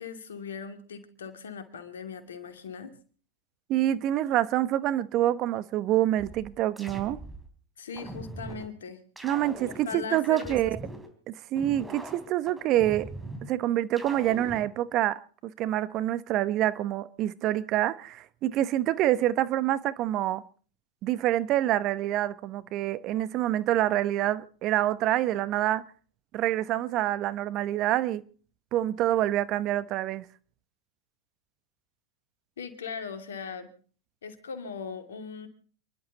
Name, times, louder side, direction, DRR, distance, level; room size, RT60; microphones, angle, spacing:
voice 1, 0.0-2.9 7.8-9.0 9.6-10.6 32.6-33.7 34.2-35.5, left 6 dB, 80° left, 2.6 m, -39 dB
voice 2, 3.7-7.2 9.2-10.8 11.3-13.1 13.4-20.4 21.0-25.8 26.3-28.2 28.7-30.2, right 13 dB, 45° right, 1.0 m, -26 dB
sound 1, 6.2-7.5 8.0-8.7 9.2-11.1 11.6-13.5 14.0-14.7, right 1 dB, 10° right, 3.6 m, -41 dB
29.0 x 11.5 x 4.1 m
hypercardioid pair, 100°, 0 cm